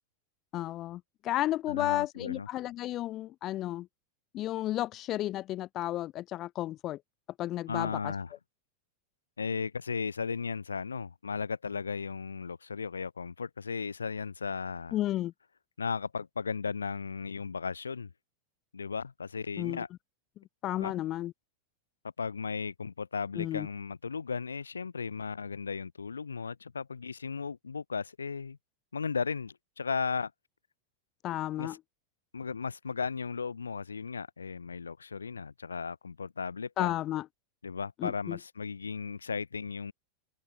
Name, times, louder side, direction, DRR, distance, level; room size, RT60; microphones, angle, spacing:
voice 1, 0.5-3.9 4.3-7.0 7.4-8.1 14.9-15.3 19.6-19.8 20.6-21.3 23.4-23.7 31.2-31.8 36.8-37.3 38.0-38.4, left 14 dB, 35° left, 0.8 m, -32 dB
voice 2, 1.7-2.5 7.7-8.3 9.4-15.0 15.8-18.1 18.7-19.9 20.8-20.9 22.2-28.6 28.9-30.3 31.6-31.8 32.3-36.9 37.6-39.9, left 5 dB, 75° left, 1.7 m, -35 dB
open air
figure-of-eight pair, 90°, 0 cm